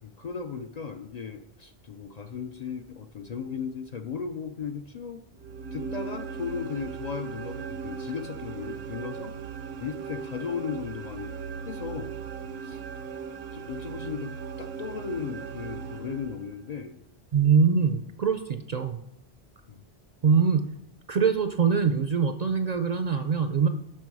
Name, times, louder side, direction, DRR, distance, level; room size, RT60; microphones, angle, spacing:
voice 1, 0.0-5.2 5.7-9.4 9.8-11.3 11.6-12.2 12.6-12.8 13.5-17.0 19.7-19.8, left 6 dB, 55° left, 7 dB, 0.5 m, -36 dB
sound 1, 5.4-16.7, right 6 dB, 80° right, 0.9 m, -38 dB
voice 2, 17.3-19.0 20.2-20.6 21.1-23.7, right 6 dB, 55° right, 8 dB, 0.5 m, -23 dB
8.8 x 6.0 x 4.7 m, 0.78 s
omnidirectional pair, 1.1 m